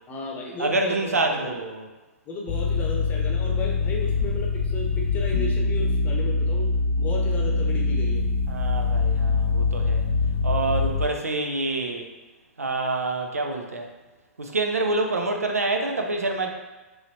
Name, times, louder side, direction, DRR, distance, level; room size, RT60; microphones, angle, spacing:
voice 1, 0.1-1.6 2.3-8.2, left 2 dB, 20° left, -1 dB, 0.8 m, -34 dB
voice 2, 0.6-1.9 8.5-10.0 10.4-12.1 12.6-13.9 14.4-16.5, right 2 dB, 80° right, 3 dB, 0.5 m, -27 dB
sound 1, 2.5-11.1, left 4 dB, 55° left, 0.6 m, -24 dB
4.7 x 3.1 x 2.7 m, 1.1 s
figure-of-eight pair, 110°, 8 cm